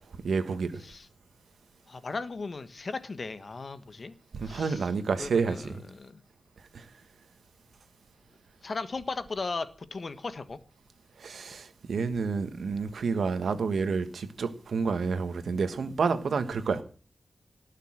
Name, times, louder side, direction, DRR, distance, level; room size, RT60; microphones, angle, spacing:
voice 1, 0.2-0.8 4.3-5.8 6.7-6.9 11.2-16.8, right 5 dB, 85° right, 1.5 m, -29 dB
voice 2, 1.9-4.1 4.4-4.9 5.2-6.2 8.6-10.6, left 3 dB, 50° left, 1.3 m, -37 dB
18.5 x 6.7 x 7.7 m
wide cardioid pair, 80°, 0 cm